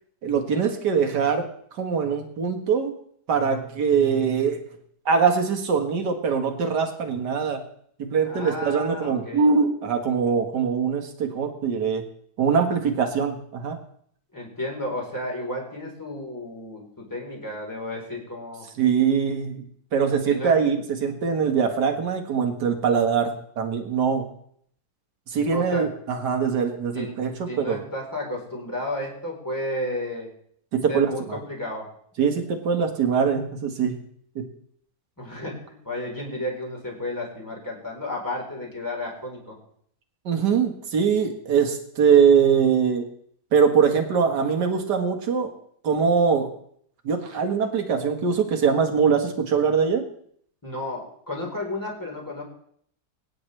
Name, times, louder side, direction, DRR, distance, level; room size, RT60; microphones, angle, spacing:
voice 1, 0.2-2.9 3.3-4.6 5.1-7.6 8.0-12.0 12.4-13.8 18.8-19.7 19.9-24.3 25.3-27.8 30.7-31.4 32.2-34.0 34.4-34.5 40.3-43.1 43.5-45.5 45.8-46.5 47.0-50.0, right 6 dB, 75° right, 5 dB, 2.1 m, -22 dB
voice 2, 8.3-9.5 14.3-18.7 20.3-20.5 25.5-25.9 26.9-27.1 27.5-30.3 30.9-31.9 35.2-39.6 50.6-52.4, left 1 dB, 10° left, -2 dB, 3.9 m, -32 dB
23.5 x 9.7 x 3.3 m, 0.64 s
omnidirectional pair, 1.8 m